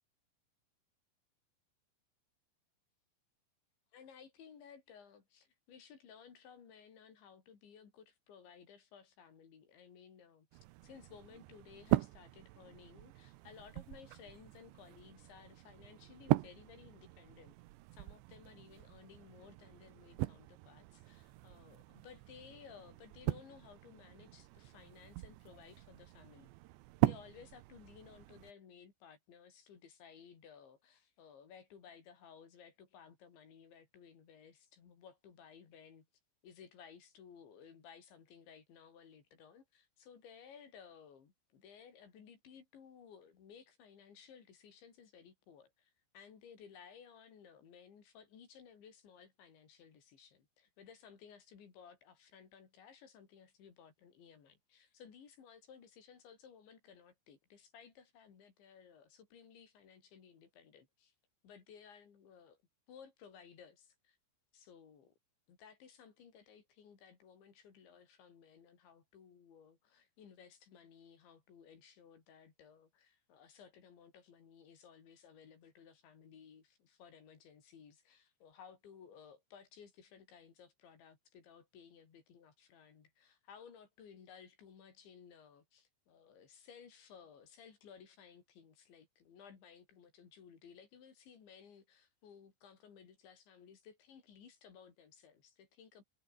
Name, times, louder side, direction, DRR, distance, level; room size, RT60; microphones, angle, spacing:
voice 1, 3.9-10.5 10.8-17.6 17.9-26.5 27.0-36.1 36.4-61.1 61.4-62.6 62.9-64.2 64.5-65.1 65.5-96.0, left 7 dB, 65° left, 6.2 m, -58 dB
sound 1, 10.5-28.5, right 18 dB, 80° right, 2.9 m, -40 dB
omnidirectional pair, 5.6 m